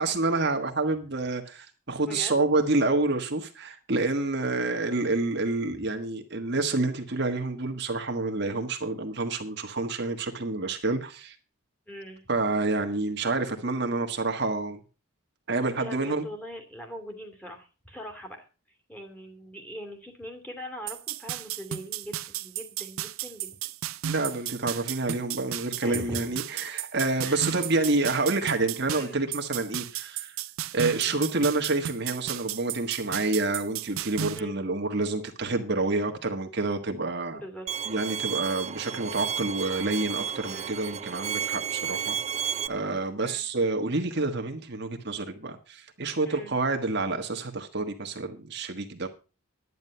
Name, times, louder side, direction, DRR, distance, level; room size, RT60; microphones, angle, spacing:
voice 1, 0.0-11.3 12.3-14.8 15.5-16.2 24.1-30.4 30.7-37.4 37.9-42.2 42.7-49.1, right 3 dB, 50° right, 1.5 m, -28 dB
voice 2, 2.1-2.5 11.9-12.3 15.8-18.5 18.9-23.7 25.8-26.3 27.2-27.4 28.9-29.2 31.1-31.3 34.3-34.6 37.3-37.7 40.4-40.7 43.2-43.5 46.2-46.5, equal, 5° left, 2.4 m, -41 dB
sound 1, 20.9-34.4, right 11 dB, 75° right, 0.6 m, -34 dB
Bowed string instrument, 37.7-42.7, right 8 dB, 30° right, 0.5 m, -32 dB
11.0 x 9.4 x 5.6 m
head